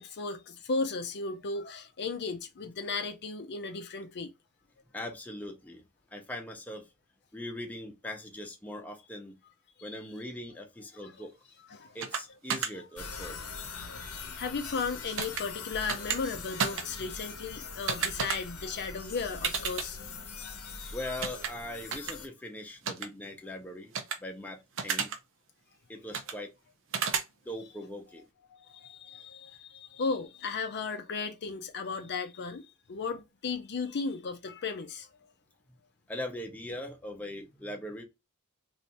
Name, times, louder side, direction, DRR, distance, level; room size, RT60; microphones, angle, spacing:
voice 1, 0.0-4.3 9.8-10.0 11.0-11.1 11.7-12.0 12.8-12.9 13.5-20.2 20.6-21.1 28.5-35.1, left 4 dB, 50° left, 0.6 m, -36 dB
voice 2, 4.9-5.8 6.1-6.9 7.3-9.4 9.8-11.3 11.9-13.4 20.9-23.9 24.2-25.1 25.9-26.5 27.4-28.2 36.1-38.0, left 1 dB, 5° left, 0.8 m, -40 dB
sound 1, 12.0-12.2 12.5-12.7 15.2-15.4 15.9-16.2 16.6-16.8 17.9-18.4 19.4-19.9 21.2-21.5 21.9-22.1 22.9-23.1 23.9-24.2 24.8-25.2 26.1-26.3 26.9-27.2, right 6 dB, 60° right, 0.7 m, -31 dB
sound 2, 12.9-22.3, left 4 dB, 90° left, 1.0 m, -42 dB
3.3 x 2.6 x 4.1 m
head